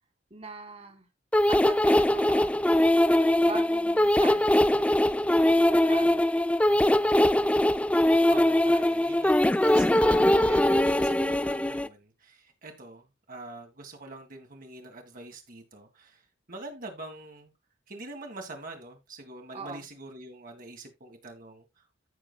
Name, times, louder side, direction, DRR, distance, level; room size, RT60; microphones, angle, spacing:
voice 1, 0.3-1.1 1.5-2.6 3.4-5.1 5.7-6.2 6.6-7.3 19.5-19.9, right 3 dB, 35° right, 1.9 m, -41 dB
sound 1, 1.3-11.9, left 1 dB, 5° left, 0.4 m, -22 dB
voice 2, 8.3-16.2 16.5-17.5 17.9-21.6, right 2 dB, 50° right, 1.8 m, -45 dB
15.0 x 6.0 x 2.2 m
head